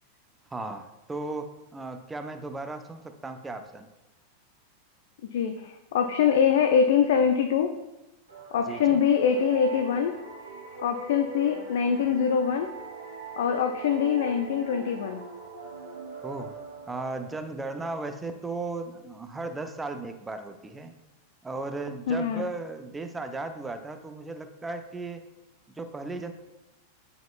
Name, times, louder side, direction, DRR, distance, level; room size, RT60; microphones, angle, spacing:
voice 1, 0.5-3.9 8.7-9.0 16.2-16.6 16.9-20.9 21.4-25.2 25.7-26.3, right 3 dB, 10° right, 8 dB, 0.5 m, -36 dB
voice 2, 5.3-7.7 8.5-10.1 10.8-12.7 13.4-15.2 22.1-22.5, left 7 dB, 55° left, 6 dB, 0.4 m, -24 dB
sound 1, 8.3-17.7, right 3 dB, 70° right, 1.6 m, -41 dB
9.0 x 4.8 x 2.3 m, 0.99 s
figure-of-eight pair, 90°, 0 cm